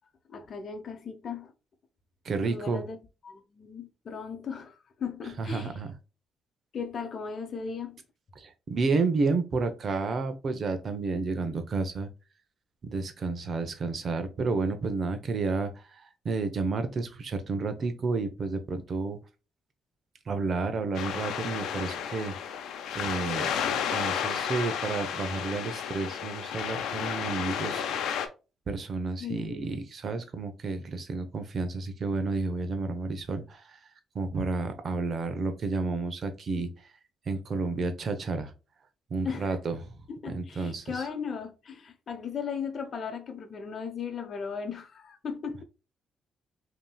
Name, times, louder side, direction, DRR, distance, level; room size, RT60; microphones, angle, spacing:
voice 1, 0.3-1.5 2.5-3.0 3.2-5.8 6.7-8.0 29.2-29.7 39.2-39.6 40.1-45.6, left 6 dB, 50° left, 0.9 m, -37 dB
voice 2, 2.2-2.8 5.4-5.9 8.4-12.1 12.8-19.2 20.3-22.3 22.9-28.2 28.7-33.8 34.1-36.7 37.3-38.5 39.1-39.8 40.3-41.0, right 3 dB, 50° right, 0.8 m, -31 dB
sound 1, 20.9-28.3, left 8 dB, 80° left, 0.7 m, -32 dB
5.4 x 3.0 x 2.3 m
cardioid pair, 90°, 0 cm